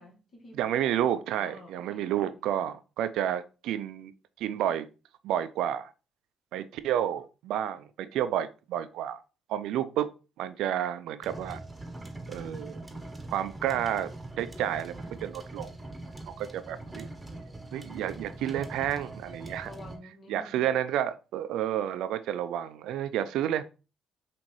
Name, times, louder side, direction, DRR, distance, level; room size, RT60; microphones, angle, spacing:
voice 1, 0.0-0.8 1.4-2.3 19.6-20.6, left 1 dB, 50° left, 1.3 m, -49 dB
voice 2, 0.5-4.1 4.4-4.9 5.2-5.9 6.5-9.2 9.5-10.1 10.4-11.6 12.3-12.8 13.3-14.1 14.4-15.7 16.3-17.1 17.7-19.7 20.3-23.6, right 11 dB, 75° right, 0.3 m, -30 dB
sound 1, 11.2-20.0, right 2 dB, 15° right, 0.9 m, -42 dB
5.3 x 2.5 x 3.0 m
hypercardioid pair, 55°, 0 cm